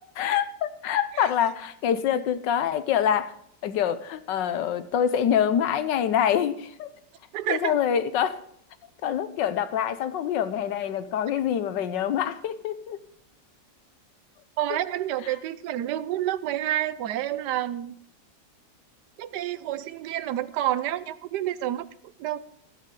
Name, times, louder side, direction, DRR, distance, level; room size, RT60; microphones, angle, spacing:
voice 1, 0.2-3.3 3.6-6.9 7.5-8.4 9.0-13.0, left 9 dB, 80° left, 13 dB, 1.5 m, -25 dB
voice 2, 7.3-7.8 14.6-17.9 19.2-21.9 22.2-22.4, right 13 dB, 75° right, 15 dB, 1.2 m, -29 dB
13.5 x 12.5 x 3.8 m, 0.66 s
omnidirectional pair, 1.9 m